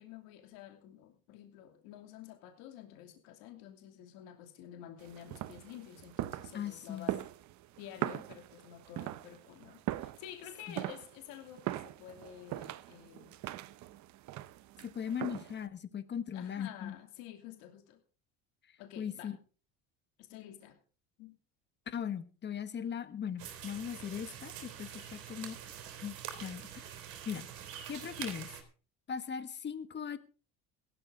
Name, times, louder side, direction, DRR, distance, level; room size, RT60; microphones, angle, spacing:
voice 1, 0.0-7.2 7.8-13.4 16.3-18.0 18.8-19.3 20.2-20.8 21.2-21.4, left 11 dB, 85° left, 5 dB, 2.8 m, -50 dB
sound 1, 5.0-15.7, right 14 dB, 55° right, 0.8 m, -41 dB
voice 2, 6.5-7.1 10.7-10.8 14.8-16.9 19.0-19.4 21.9-25.6 26.0-26.9 27.2-27.5 27.9-28.5 29.1-30.2, left 8 dB, 30° left, 12 dB, 1.4 m, -39 dB
sound 2, 23.4-28.6, right 9 dB, 75° right, 4.1 m, -45 dB
17.0 x 13.0 x 3.9 m, 0.37 s
cardioid pair, 135°, 34 cm